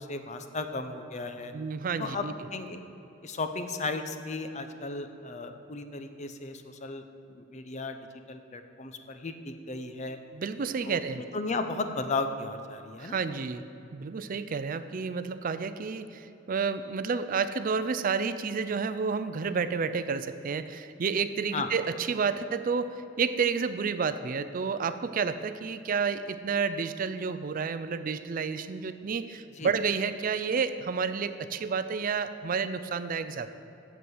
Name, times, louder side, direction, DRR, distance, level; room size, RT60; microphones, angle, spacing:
voice 1, 0.0-1.5 2.0-2.8 3.2-8.0 8.3-10.2 10.8-13.2 21.5-21.7 29.6-29.7, left 3 dB, 35° left, 8 dB, 0.7 m, -35 dB
voice 2, 1.5-2.3 10.3-11.2 13.0-13.6 13.9-33.5, right 5 dB, 45° right, 12 dB, 0.4 m, -30 dB
8.4 x 7.3 x 7.8 m, 2.9 s
head